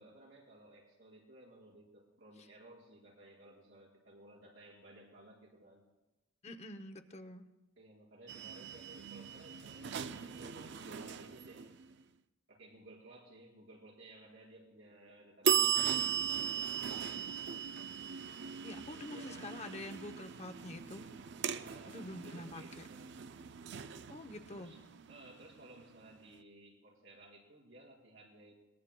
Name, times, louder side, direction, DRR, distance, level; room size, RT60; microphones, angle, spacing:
voice 1, 0.0-5.8 7.8-11.7 12.5-17.1 18.9-19.5 21.5-23.2 24.5-24.8 25.1-28.6, right 1 dB, 85° right, -3 dB, 5.0 m, -57 dB
voice 2, 6.4-7.4 18.6-21.1 21.9-22.9 24.1-24.7, left 1 dB, 35° left, 7 dB, 0.7 m, -46 dB
sound 1, 8.3-12.0 15.4-26.1, right 8 dB, 60° right, 0.4 m, -38 dB
22.0 x 19.5 x 2.2 m, 1.0 s
head